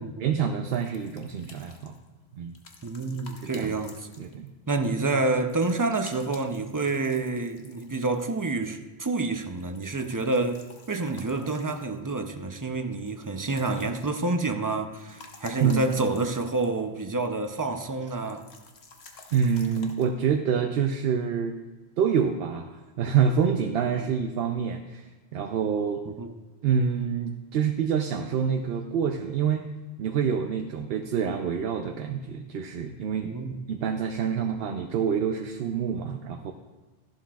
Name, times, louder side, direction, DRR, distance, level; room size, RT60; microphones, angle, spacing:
voice 1, 0.2-2.0 2.3-2.5 3.4-3.8 4.2-4.5 15.6-15.9 19.3-21.6 22.0-25.1 25.3-26.0 26.6-29.6 30.0-33.3 33.7-36.5, right 7 dB, 70° right, 5 dB, 0.8 m, -27 dB
sound 1, 0.7-4.7 5.5-8.5 9.4-12.2 13.1-14.5 14.8-16.9 17.2-17.3 18.2-20.1, left 4 dB, 80° left, 1.3 m, -51 dB
voice 2, 2.8-4.1 4.7-18.4 24.0-24.1 26.1-26.3 33.2-33.6, right 3 dB, 25° right, 7 dB, 0.4 m, -28 dB
14.5 x 11.5 x 2.3 m, 1.2 s
omnidirectional pair, 1.1 m